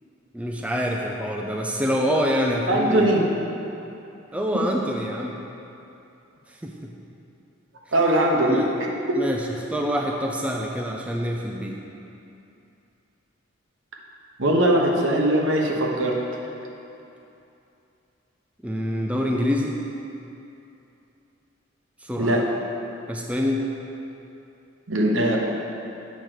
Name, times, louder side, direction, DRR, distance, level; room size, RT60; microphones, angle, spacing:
voice 1, 0.3-3.1 4.3-5.4 6.5-6.9 8.5-8.7 9.1-11.8 18.6-19.7 22.0-22.5 23.1-23.7, equal, 5° right, 0 dB, 0.4 m, -26 dB
voice 2, 2.7-3.3 7.9-8.6 9.1-9.2 14.4-16.2 22.2-22.4 24.9-25.4, right 1 dB, 70° right, -1 dB, 1.1 m, -20 dB
8.2 x 4.6 x 6.4 m, 2.8 s
head